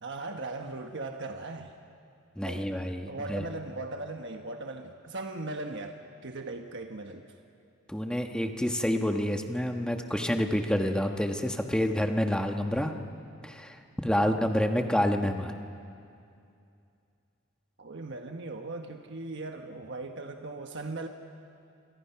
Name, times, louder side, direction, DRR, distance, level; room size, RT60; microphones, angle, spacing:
voice 1, 0.0-1.7 2.4-2.7 3.0-7.2 14.1-14.4 17.8-21.1, right 2 dB, 60° right, 4 dB, 1.3 m, -38 dB
voice 2, 2.4-3.4 7.9-12.9 13.4-15.5, equal, 5° left, 4 dB, 1.3 m, -28 dB
28.5 x 27.0 x 5.9 m, 2.5 s
head